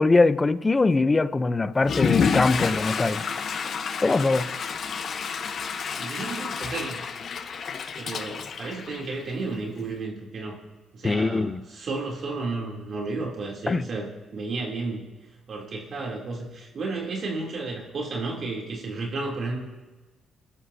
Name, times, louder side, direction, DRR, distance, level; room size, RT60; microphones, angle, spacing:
voice 1, 0.0-3.2 4.0-4.5 11.0-11.6 13.7-13.9, left 3 dB, 25° left, 0.7 m, -22 dB
Water / Toilet flush, 1.8-9.5, left 6 dB, 55° left, 1.0 m, -29 dB
voice 2, 6.0-7.0 8.0-10.6 10.9-15.1 15.5-19.6, right 3 dB, 55° right, 3.1 m, -32 dB
27.5 x 13.0 x 2.8 m
cardioid pair, 90°, 0 cm